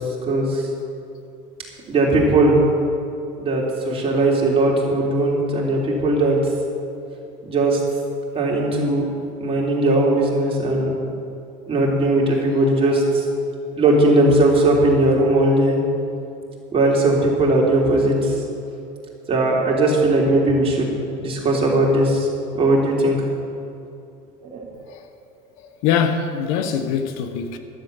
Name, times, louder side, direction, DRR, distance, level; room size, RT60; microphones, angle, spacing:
voice 1, 0.2-0.6 1.9-2.6 3.4-6.4 7.4-7.8 8.3-9.0 9.4-10.9 11.7-13.2 13.8-15.8 16.7-18.4 19.3-20.9 21.2-22.3 22.5-23.2 24.4-24.7, right 2 dB, 35° right, 3.4 m, -18 dB
voice 2, 25.6-27.6, left 7 dB, 80° left, 1.1 m, -23 dB
13.0 x 7.7 x 8.1 m
supercardioid pair, 105°, 17 cm